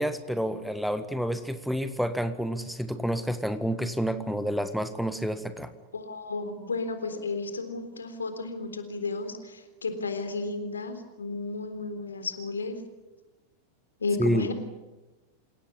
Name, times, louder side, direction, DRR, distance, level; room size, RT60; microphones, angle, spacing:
voice 1, 0.0-5.7 14.2-14.5, equal, ahead, 11 dB, 1.5 m, -29 dB
voice 2, 5.9-12.8 14.0-14.5, left 3 dB, 75° left, 8 dB, 3.7 m, -33 dB
28.0 x 17.0 x 9.9 m, 1.1 s
figure-of-eight pair, 90°, 0 cm